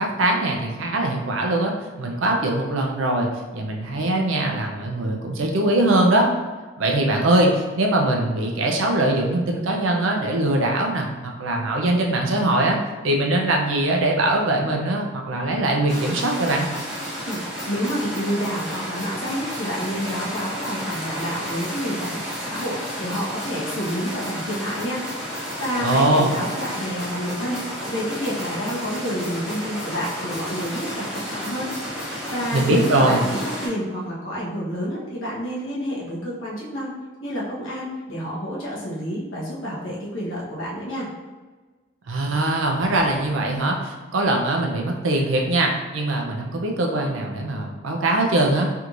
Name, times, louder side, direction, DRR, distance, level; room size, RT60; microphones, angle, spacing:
voice 1, 0.0-3.3 3.5-6.3 6.8-12.8 13.0-16.7 25.8-26.3 32.5-33.2 42.1-48.7, right 1 dB, 90° right, 1 dB, 0.5 m, -22 dB
sound 1, 15.9-33.7, equal, ahead, 1.1 m, -32 dB
voice 2, 17.1-25.0 25.6-31.7 32.3-36.9 37.2-41.1, equal, 85° left, -6 dB, 1.1 m, -29 dB
3.4 x 3.0 x 2.5 m, 1.3 s
head